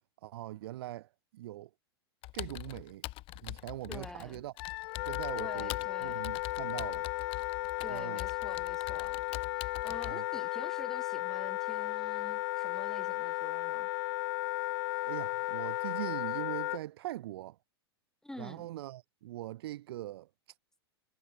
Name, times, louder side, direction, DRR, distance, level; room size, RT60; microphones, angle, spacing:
voice 1, 0.2-1.7 2.3-3.1 3.4-4.5 5.0-5.7 6.0-7.1 7.9-8.2 10.0-10.3 15.0-17.6 18.4-20.6, right 15 dB, 65° right, 2.4 m, -41 dB
Computer keyboard, 2.2-10.1, left 19 dB, 40° left, 2.2 m, -44 dB
voice 2, 3.9-4.4 5.4-6.3 7.8-9.2 9.5-13.9 18.2-18.7, left 1 dB, 5° left, 5.1 m, -48 dB
Wind instrument woodwind instrument, 4.6-16.8, left 21 dB, 55° left, 1.5 m, -35 dB
hypercardioid pair, 110°, 14 cm